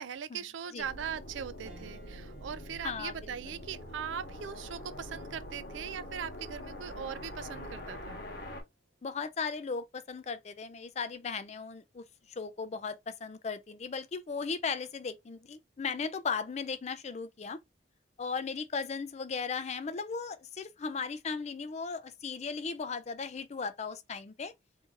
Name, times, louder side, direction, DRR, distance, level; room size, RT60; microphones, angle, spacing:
voice 1, 0.0-8.2, right 8 dB, 85° right, 0.4 m, -40 dB
sound 1, 0.8-8.6, left 1 dB, 60° left, 1.1 m, -44 dB
sound 2, 1.7-11.3 11.7-11.8 13.2-13.6, right 3 dB, 30° right, 1.1 m, -63 dB
voice 2, 2.8-3.1 9.0-17.6 18.2-24.5, left 5 dB, 35° left, 0.4 m, -37 dB
2.7 x 2.6 x 3.7 m
head